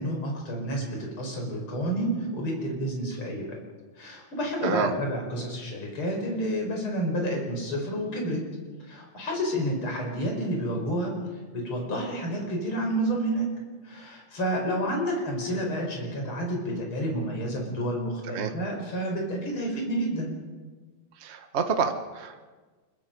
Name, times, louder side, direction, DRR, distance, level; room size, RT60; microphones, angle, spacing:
voice 1, 0.0-3.6 4.0-8.4 8.8-11.2 11.5-13.5 13.8-20.4, right 1 dB, 40° left, 0 dB, 5.7 m, -30 dB
voice 2, 21.2-22.5, right 6 dB, 65° right, 6 dB, 0.6 m, -28 dB
25.0 x 22.5 x 5.4 m, 1.4 s
omnidirectional pair, 3.5 m